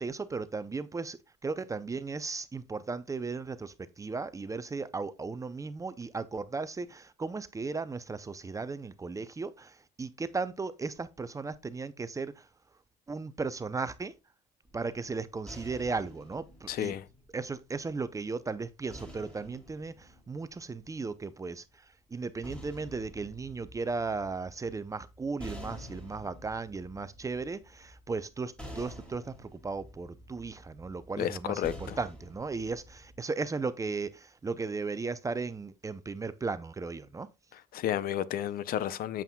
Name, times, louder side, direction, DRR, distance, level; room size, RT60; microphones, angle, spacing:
voice 1, 0.0-12.5 13.1-14.1 14.7-16.9 17.3-37.3, right 4 dB, 20° right, 0.5 m, -36 dB
sound 1, 14.7-18.0 18.9-21.2 22.1-33.2, equal, 5° left, 2.9 m, -49 dB
voice 2, 16.7-17.0 31.2-32.0 37.7-39.2, left 11 dB, 60° left, 0.5 m, -32 dB
8.1 x 7.3 x 2.2 m
cardioid pair, 110°, 17 cm